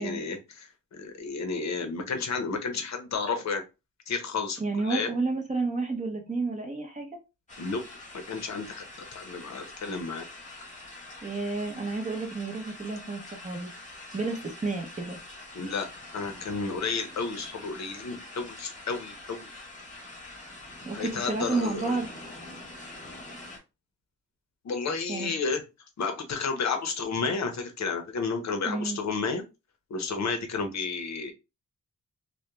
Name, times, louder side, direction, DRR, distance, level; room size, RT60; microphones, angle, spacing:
voice 1, 0.0-3.6 4.1-4.6 4.9-5.1 7.6-7.8 8.1-8.8 9.1-10.2 15.5-15.9 16.1-19.5 20.9-22.0 24.6-25.6 26.0-29.4 29.9-31.3, left 4 dB, 60° left, 6 dB, 0.6 m, -31 dB
voice 2, 4.6-7.1 11.2-13.7 14.1-15.2 20.8-22.1 25.1-25.3 28.6-29.0, right 3 dB, 25° right, 3 dB, 0.6 m, -31 dB
sound 1, 7.5-23.6, left 2 dB, 25° left, 1.0 m, -45 dB
2.2 x 2.1 x 2.9 m, 0.26 s
wide cardioid pair, 110°, 31 cm